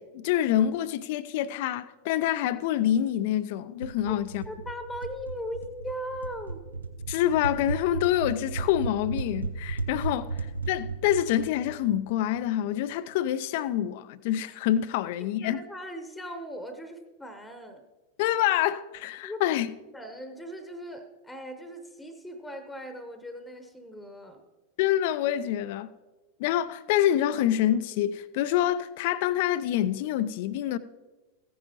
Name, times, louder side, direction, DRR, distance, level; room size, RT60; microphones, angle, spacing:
voice 1, 0.0-4.4 7.1-10.3 10.7-15.6 18.2-19.7 24.8-25.9 26.4-30.8, left 12 dB, 50° left, 0.4 m, -26 dB
sound 1, 3.8-12.5, right 4 dB, 80° right, 0.6 m, -36 dB
voice 2, 4.5-6.6 15.2-17.8 19.2-19.4 19.9-24.4, equal, 5° left, 1.0 m, -39 dB
15.0 x 10.0 x 3.0 m
figure-of-eight pair, 90°, 0 cm